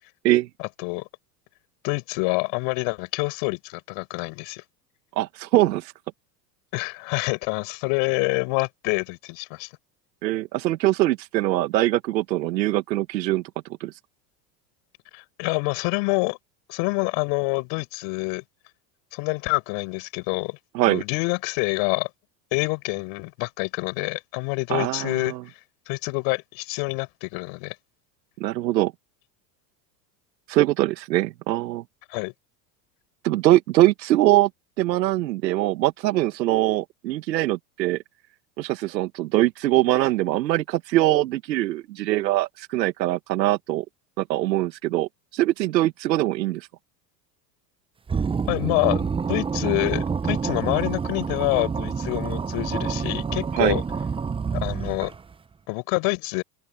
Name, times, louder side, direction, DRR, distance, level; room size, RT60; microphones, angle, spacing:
voice 1, 0.6-1.1 1.8-4.6 6.7-9.7 15.1-16.4 16.7-18.4 19.1-20.6 20.9-22.1 22.5-25.3 25.9-27.7 32.1-32.3 48.5-53.8 54.5-55.1 55.7-56.4, left 33 dB, 65° left, 6.4 m, -27 dB
voice 2, 5.2-5.9 10.2-13.4 13.8-13.9 20.7-21.0 24.7-25.4 28.4-28.9 30.5-31.8 33.2-34.5 34.8-38.0 38.6-43.8 44.2-46.7 53.5-53.8, right 16 dB, 85° right, 1.4 m, -22 dB
sound 1, 48.1-55.3, right 5 dB, 10° right, 0.5 m, -27 dB
open air
hypercardioid pair, 90°, 49 cm